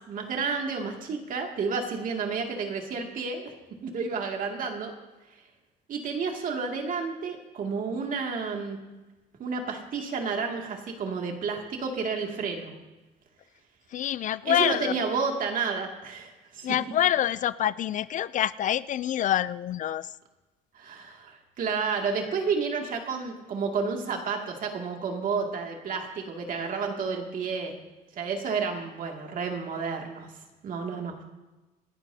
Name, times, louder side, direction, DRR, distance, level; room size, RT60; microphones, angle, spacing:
voice 1, 0.1-3.5 3.8-4.9 5.9-8.8 9.4-12.7 14.4-16.7 20.7-27.7 28.1-30.3 30.6-31.2, right 5 dB, 55° right, 2 dB, 2.3 m, -31 dB
voice 2, 13.9-14.9 16.6-20.1, left 11 dB, 50° left, 17 dB, 0.4 m, -26 dB
27.5 x 11.0 x 2.8 m, 1.1 s
cardioid pair, 110°, 17 cm